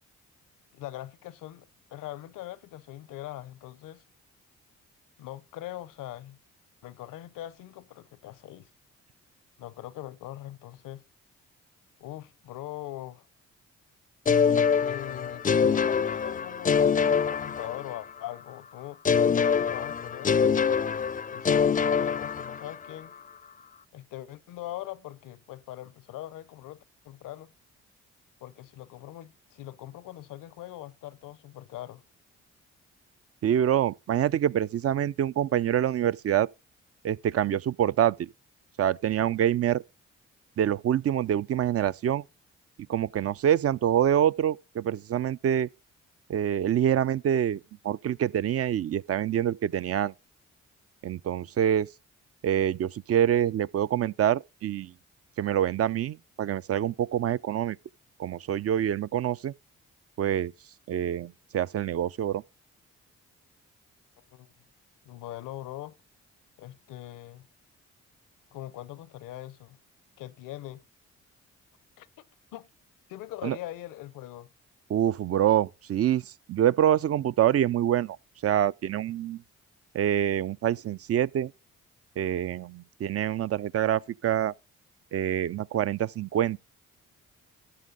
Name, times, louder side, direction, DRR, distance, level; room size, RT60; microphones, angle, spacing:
voice 1, 0.7-4.0 5.2-6.4 6.8-8.7 9.6-11.0 12.0-13.3 14.4-19.0 19.3-20.6 21.3-23.1 23.9-27.5 28.4-32.0 64.3-64.5 65.1-65.9 66.6-67.5 68.5-69.8 70.2-70.8 72.0-72.3 72.5-72.7 73.1-74.5, left 14 dB, 80° left, 0.7 m, -42 dB
sound 1, 14.3-18.2 19.0-22.9, left 6 dB, 25° left, 0.4 m, -25 dB
voice 2, 33.4-36.5 37.0-38.3 38.8-39.8 40.6-42.2 42.9-45.7 46.3-50.1 51.0-51.9 52.4-54.9 55.4-57.8 58.2-59.5 60.2-60.5 60.9-62.4 73.4-73.6 74.9-78.2 78.4-79.4 79.9-81.5 82.2-84.5 85.1-86.6, right 10 dB, 50° right, 0.4 m, -26 dB
13.0 x 7.6 x 3.8 m
supercardioid pair, 50°, 32 cm